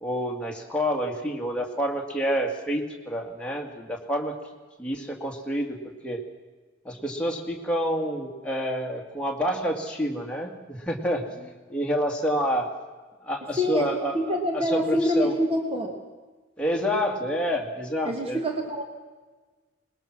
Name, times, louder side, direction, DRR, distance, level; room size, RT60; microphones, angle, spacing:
voice 1, 0.0-4.4 4.8-5.8 6.0-6.2 6.9-12.7 13.2-15.3 16.6-18.4, equal, 5° left, 0 dB, 2.1 m, -28 dB
voice 2, 13.6-15.9 18.0-18.8, equal, 30° right, 3 dB, 1.6 m, -26 dB
21.0 x 20.0 x 6.1 m, 1.3 s
head